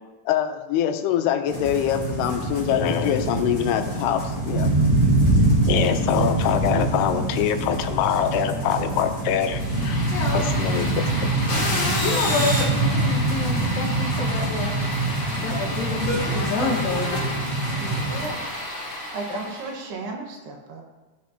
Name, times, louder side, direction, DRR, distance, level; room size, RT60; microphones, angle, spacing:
voice 1, 0.3-4.7 5.7-10.1 10.3-11.3, left 10 dB, 90° left, 7 dB, 2.7 m, -24 dB
sound 1, 1.5-18.3, right 2 dB, 15° right, 4.2 m, -24 dB
sound 2, 9.5-19.7, left 1 dB, 45° left, 5.0 m, -30 dB
voice 2, 10.1-10.5 12.0-14.7 15.4-17.2, left 4 dB, 65° left, -3 dB, 3.1 m, -28 dB
voice 3, 17.8-18.5 19.1-20.8, right 3 dB, 75° right, 0 dB, 3.6 m, -34 dB
15.5 x 10.5 x 2.9 m, 1.2 s
omnidirectional pair, 4.7 m